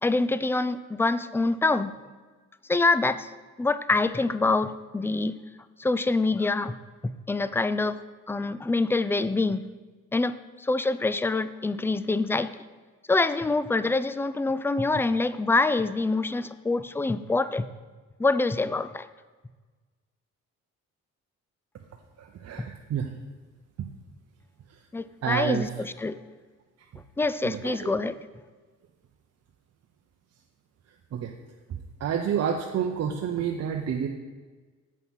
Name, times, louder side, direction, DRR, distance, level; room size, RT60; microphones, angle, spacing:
voice 1, 0.0-1.9 2.7-3.3 3.6-5.4 5.8-6.7 7.3-8.0 8.3-9.6 10.1-10.4 10.6-12.5 13.1-17.7 18.2-19.1 24.9-26.2 27.2-28.2, left 3 dB, 10° left, 14 dB, 0.3 m, -25 dB
voice 2, 22.2-23.1 25.2-25.7 27.4-27.9 31.1-31.3 32.0-34.1, right 8 dB, 55° right, 3 dB, 0.7 m, -29 dB
8.3 x 5.6 x 6.1 m, 1.4 s
cardioid pair, 90°, 30 cm